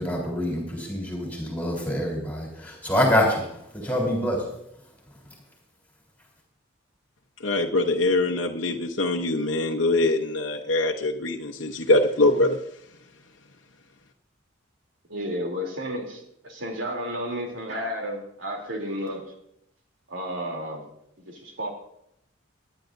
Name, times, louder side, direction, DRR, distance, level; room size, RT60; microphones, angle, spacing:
voice 1, 0.0-4.4, left 1 dB, 10° left, -2 dB, 3.7 m, -26 dB
voice 2, 7.4-12.6, left 2 dB, 75° left, 1 dB, 0.9 m, -23 dB
voice 3, 15.1-19.2 20.1-20.9 21.2-21.7, equal, 80° right, 1 dB, 3.1 m, -32 dB
24.0 x 10.5 x 2.6 m, 0.76 s
head